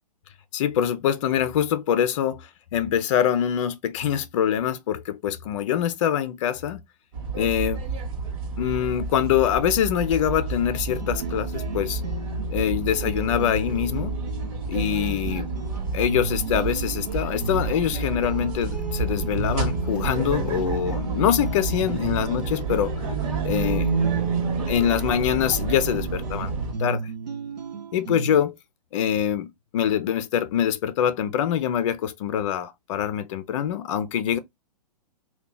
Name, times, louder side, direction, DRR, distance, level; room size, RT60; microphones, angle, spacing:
voice 1, 0.5-6.8 7.3-7.8 8.6-12.0 12.5-14.1 14.7-15.5 15.9-22.9 23.4-23.9 24.7-26.5 26.8-27.1 27.9-28.6 28.9-34.4, left 9 dB, 50° left, 0.4 m, -24 dB
sound 1, 7.1-26.7, right 4 dB, 55° right, 1.2 m, -29 dB
sound 2, 10.9-28.4, right 3 dB, 85° right, 0.8 m, -35 dB
2.7 x 2.3 x 3.7 m
hypercardioid pair, 125°, 21 cm